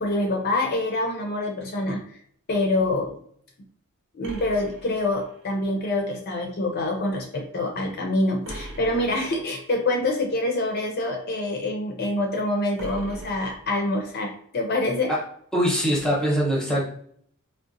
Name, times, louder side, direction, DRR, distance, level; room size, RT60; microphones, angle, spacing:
voice 1, 0.0-2.2 2.5-3.1 4.1-15.1, left 2 dB, 45° left, 1 dB, 0.5 m, -26 dB
sound 1, 4.2-5.6 8.4-9.6 12.8-14.1, right 1 dB, 65° right, 0.8 m, -40 dB
voice 2, 15.5-16.9, equal, 5° left, -4 dB, 0.8 m, -22 dB
3.7 x 2.1 x 2.5 m, 0.63 s
head